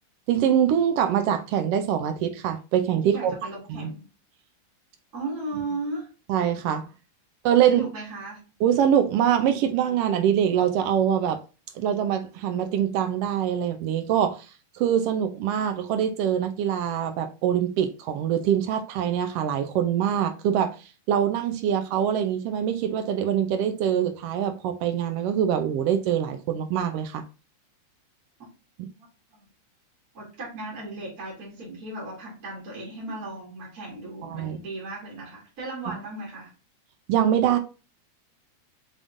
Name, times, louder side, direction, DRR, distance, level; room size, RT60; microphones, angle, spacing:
voice 1, 0.3-3.3 3.7-3.9 6.3-6.8 7.4-7.8 8.6-11.4 11.7-14.4 14.7-20.8 21.1-27.2 34.2-34.6 35.9-36.0 37.1-37.6, right 9 dB, 90° right, 1.3 m, -24 dB
voice 2, 3.0-4.1 5.1-6.1 7.7-8.4 28.8-29.1 29.3-29.5 30.1-36.5, right 2 dB, 35° right, 2.0 m, -36 dB
5.3 x 3.5 x 2.5 m
omnidirectional pair, 3.4 m